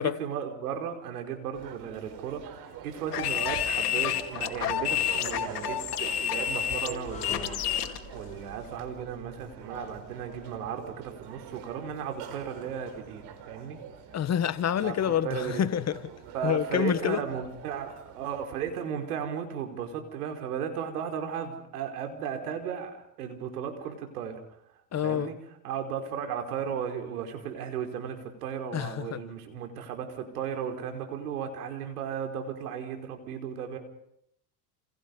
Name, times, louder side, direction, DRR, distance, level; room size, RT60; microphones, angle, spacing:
voice 1, 0.0-13.8 14.8-15.0 15.2-15.7 16.3-24.4 25.0-25.3 25.6-33.8, right 8 dB, 80° right, 4.9 m, -35 dB
sound 1, 1.5-18.5, right 8 dB, 60° right, 4.5 m, -44 dB
sound 2, 3.1-8.0, left 10 dB, 85° left, 2.5 m, -29 dB
sound 3, 7.1-12.3, left 4 dB, 15° left, 7.5 m, -46 dB
voice 2, 14.1-16.0 16.4-17.2 24.9-25.3 28.7-29.2, left 9 dB, 35° left, 1.6 m, -27 dB
29.0 x 29.0 x 5.5 m
hypercardioid pair, 85°, 45 cm